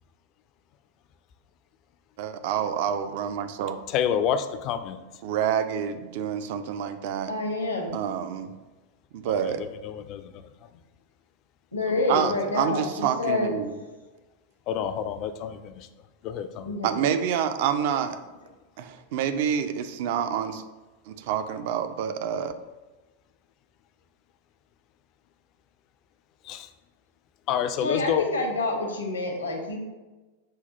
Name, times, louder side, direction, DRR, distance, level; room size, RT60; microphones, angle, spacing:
voice 1, 2.2-3.8 5.2-7.3 7.9-8.5 9.1-9.6 12.1-13.7 16.8-18.2 18.8-20.6 21.1-22.5, right 8 dB, 50° right, 9 dB, 0.4 m, -27 dB
voice 2, 3.9-5.0 9.2-10.7 11.9-12.0 14.7-15.9 16.2-16.7 26.4-26.7 27.5-28.3, left 8 dB, 40° left, 10 dB, 0.3 m, -29 dB
voice 3, 7.3-8.0 11.7-13.9 16.6-17.0 27.8-29.8, left 2 dB, 75° left, 2 dB, 0.8 m, -28 dB
5.6 x 2.3 x 4.0 m, 1.2 s
figure-of-eight pair, 90°, 0 cm